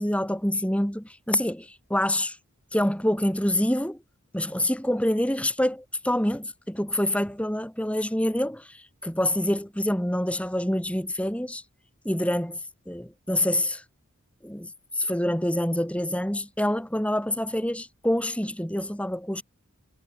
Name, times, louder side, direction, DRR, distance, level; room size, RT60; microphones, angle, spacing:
voice 1, 0.0-2.4 2.7-4.0 4.3-11.6 12.0-12.6 12.9-13.8 14.4-19.4, left 1 dB, 5° left, 3.9 m, -26 dB
head